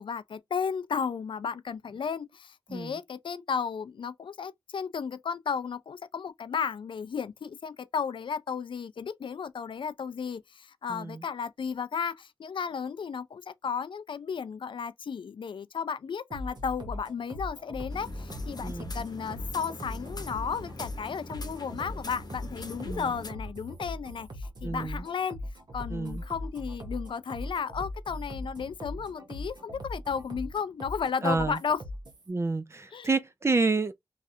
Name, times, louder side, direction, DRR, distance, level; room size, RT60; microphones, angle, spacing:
voice 1, 0.0-25.4 25.7-31.8 32.9-33.1, left 6 dB, 75° left, 0.4 m, -34 dB
voice 2, 10.9-11.2 18.6-18.9 22.8-23.1 24.6-25.0 25.9-26.2 31.2-31.6 32.3-33.9, right 3 dB, 30° right, 0.5 m, -29 dB
sound 1, 16.3-32.3, left 1 dB, 55° right, 1.0 m, -40 dB
sound 2, 17.9-23.3, left 2 dB, 50° left, 0.8 m, -43 dB
3.2 x 2.4 x 2.6 m
wide cardioid pair, 110°, 9 cm